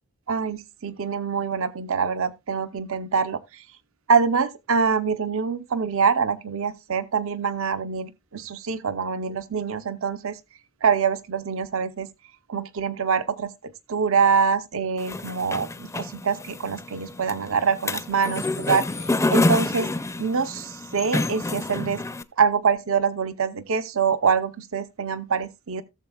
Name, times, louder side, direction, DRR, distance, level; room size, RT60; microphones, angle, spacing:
voice 1, 0.3-3.6 4.1-10.4 10.8-12.1 12.5-19.9 20.2-22.0 22.4-25.8, right 5 dB, 70° right, 0.7 m, -25 dB
sound 1, 15.0-22.2, left 2 dB, 15° left, 0.4 m, -27 dB
16.5 x 7.1 x 2.3 m
head